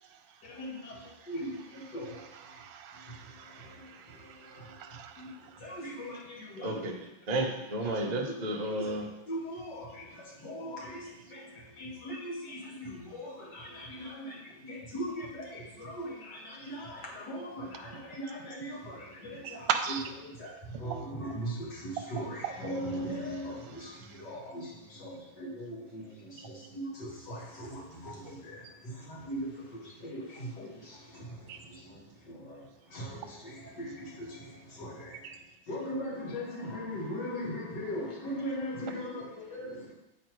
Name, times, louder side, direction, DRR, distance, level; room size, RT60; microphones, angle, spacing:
voice 1, 0.5-1.0 1.3-2.2 3.6-3.9 4.2-4.7 5.2-5.3 5.6-6.7 8.2-8.3 9.3-20.5 20.8-31.4 31.8-32.0 32.3-32.6 32.9-35.2 35.7-39.9, equal, 60° left, -3 dB, 2.1 m, -40 dB
voice 2, 2.0-3.7 4.8-5.1 19.7-20.1 22.4-22.7 31.5-31.6 35.2-35.4, right 8 dB, 70° right, 5 dB, 1.3 m, -36 dB
voice 3, 6.6-9.1, right 1 dB, 50° right, 0 dB, 0.5 m, -32 dB
8.2 x 3.8 x 4.5 m, 0.95 s
omnidirectional pair, 2.1 m